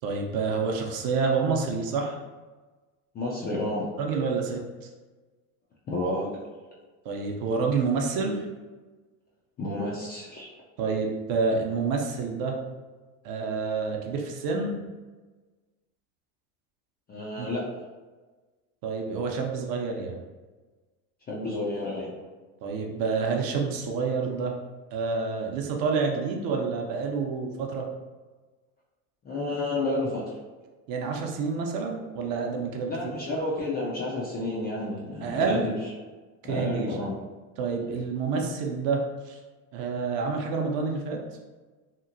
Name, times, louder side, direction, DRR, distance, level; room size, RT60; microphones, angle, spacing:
voice 1, 0.0-2.2 4.0-4.6 7.0-8.4 10.8-12.6 13.2-14.8 17.4-17.5 18.8-20.2 22.6-24.5 24.9-27.9 30.9-33.1 35.2-35.6 36.5-37.0 37.6-39.4 39.7-41.2, right 4 dB, 50° right, 1 dB, 0.6 m, -28 dB
voice 2, 3.1-3.9 5.9-6.4 9.6-10.5 17.1-17.7 21.3-22.1 29.2-30.2 32.9-35.8 36.4-37.2, left 2 dB, 25° left, -5 dB, 0.3 m, -30 dB
2.9 x 2.4 x 2.5 m, 1.3 s
supercardioid pair, 105°, 46 cm